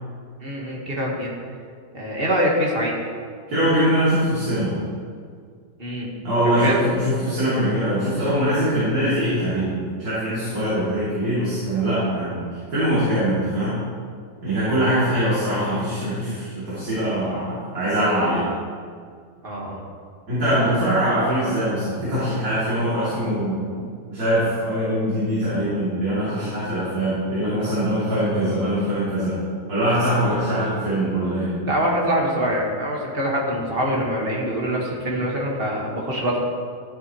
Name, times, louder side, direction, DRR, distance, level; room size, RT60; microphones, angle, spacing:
voice 1, 0.4-1.3 1.9-3.1 5.8-6.1 6.6-6.8 14.7-14.9 19.4-19.8 31.7-36.4, equal, 35° right, -3 dB, 1.6 m, -24 dB
voice 2, 3.5-4.7 6.2-12.4 12.7-13.8 14.4-18.4 20.3-23.6 24.1-29.3 29.7-31.5, equal, 65° right, -12 dB, 3.2 m, -22 dB
13.5 x 7.7 x 3.0 m, 2.1 s
omnidirectional pair, 1.8 m